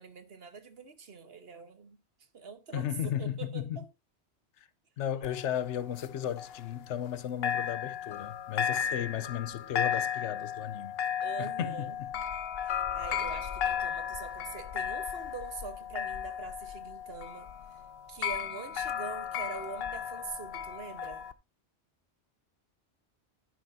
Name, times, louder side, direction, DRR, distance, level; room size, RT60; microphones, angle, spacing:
voice 1, 0.0-2.0 2.3-3.9 11.2-12.0 12.6-17.5 18.1-21.2, right 5 dB, 60° right, 1.3 m, -44 dB
voice 2, 2.7-3.8 5.0-10.9 11.4-11.9 13.1-13.2, left 10 dB, 85° left, 1.0 m, -35 dB
sound 1, 5.2-7.2 7.4-21.3, left 8 dB, 65° left, 0.9 m, -35 dB
10.0 x 9.9 x 2.6 m
omnidirectional pair, 1.2 m